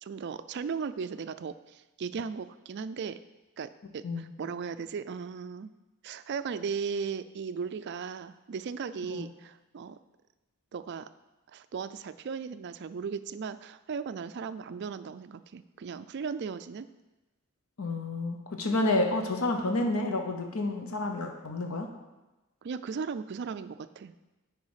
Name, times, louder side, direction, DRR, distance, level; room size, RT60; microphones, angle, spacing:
voice 1, 0.0-3.2 3.6-5.7 6.0-10.0 10.7-11.1 11.5-16.9 22.6-24.1, right 5 dB, 50° right, 12 dB, 0.3 m, -37 dB
voice 2, 17.8-21.9, left 2 dB, 70° left, 4 dB, 0.9 m, -29 dB
9.5 x 4.9 x 4.9 m, 1.1 s
head